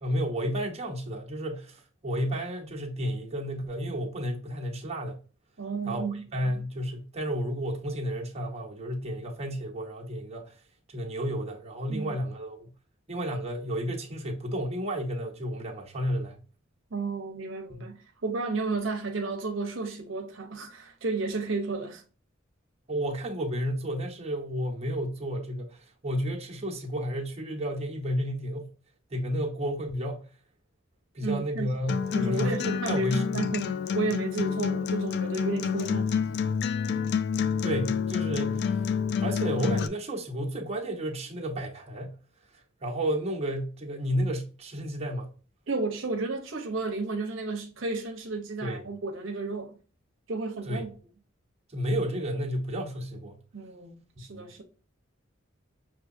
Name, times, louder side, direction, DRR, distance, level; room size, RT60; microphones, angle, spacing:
voice 1, 0.0-5.2 5.8-6.0 6.3-10.5 10.9-12.7 13.1-16.4 17.7-17.9 22.9-28.7 29.1-30.3 31.1-32.6 32.9-33.5 37.6-38.9 39.2-42.2 42.8-45.3 48.6-48.9 50.6-50.8 51.7-53.4 54.2-54.5, equal, 35° right, 0.9 m, -32 dB
voice 2, 5.6-6.3 11.9-12.1 16.9-22.0 31.2-31.7 32.1-36.1 45.7-49.8 50.3-50.9 53.5-54.6, right 3 dB, 70° right, 0.7 m, -32 dB
Acoustic guitar, 31.9-39.9, left 6 dB, 55° left, 0.3 m, -28 dB
6.1 x 2.7 x 2.6 m
head